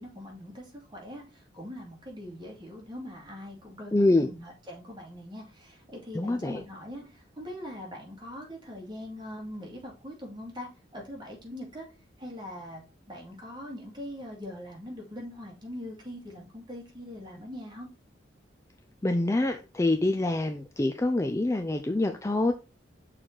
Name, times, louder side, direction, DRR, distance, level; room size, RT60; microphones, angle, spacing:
voice 1, 0.0-3.9 4.2-11.9 12.2-12.8 13.1-17.9, left 1 dB, 25° right, -1 dB, 2.3 m, -42 dB
voice 2, 3.9-4.3 6.1-6.6 19.0-22.5, left 2 dB, 15° left, 6 dB, 0.4 m, -25 dB
6.3 x 3.9 x 4.5 m, 0.31 s
head